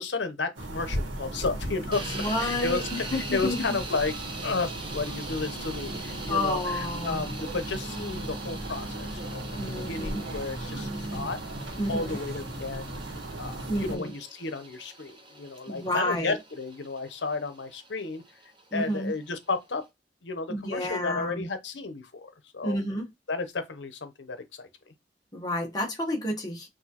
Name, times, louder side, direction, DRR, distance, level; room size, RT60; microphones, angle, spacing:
voice 1, 0.0-4.1 4.4-11.4 11.9-12.9 13.4-18.2 18.7-19.8 20.2-22.8 23.3-24.7, left 3 dB, 85° left, 0.8 m, -33 dB
sound 1, 0.5-14.0, right 1 dB, 90° right, 1.3 m, -36 dB
sound 2, 1.9-19.9, right 2 dB, 25° right, 0.8 m, -43 dB
voice 2, 2.1-3.8 6.3-7.2 9.6-10.2 11.8-12.2 13.7-14.1 15.7-16.4 18.7-19.1 20.5-21.5 22.6-23.1 25.3-26.7, left 1 dB, 20° left, 1.1 m, -30 dB
6.0 x 2.6 x 2.9 m
head